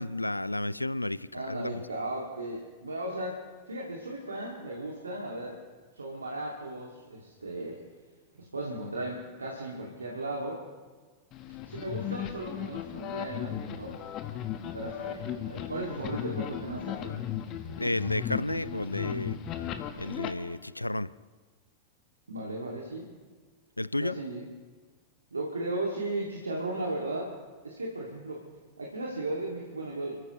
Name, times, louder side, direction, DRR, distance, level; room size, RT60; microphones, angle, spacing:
voice 1, 0.0-1.8 17.8-19.4 20.0-21.2 23.8-24.2, left 1 dB, 85° left, 0.4 m, -32 dB
voice 2, 1.3-5.6 5.9-7.8 8.3-10.6 11.7-14.1 14.7-17.3 22.3-23.1 24.0-24.4 25.3-27.3 27.6-28.4 28.8-30.2, right 1 dB, 75° right, 2.4 m, -36 dB
sound 1, 11.3-20.3, left 10 dB, 35° left, 1.4 m, -36 dB
29.0 x 14.5 x 3.2 m
figure-of-eight pair, 90°, 0 cm